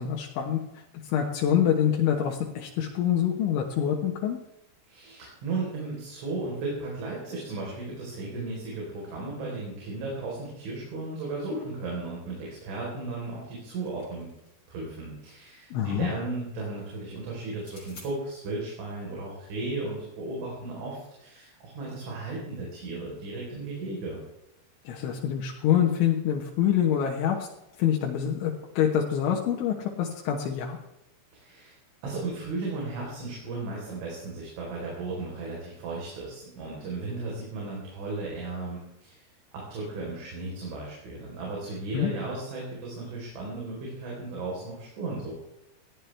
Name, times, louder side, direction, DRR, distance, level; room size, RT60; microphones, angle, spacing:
voice 1, 0.0-4.4 15.7-16.1 24.9-27.5 27.8-30.8 41.9-42.1, left 9 dB, 75° left, 0 dB, 3.7 m, -26 dB
voice 2, 4.9-14.3 14.7-24.2 31.3-31.8 32.0-39.2 39.5-45.4, right 3 dB, 70° right, -3 dB, 6.5 m, -35 dB
sound 1, 13.9-14.8 17.5-18.1, left 3 dB, 20° left, 3.5 m, -51 dB
19.5 x 14.0 x 3.4 m, 0.88 s
omnidirectional pair, 5.6 m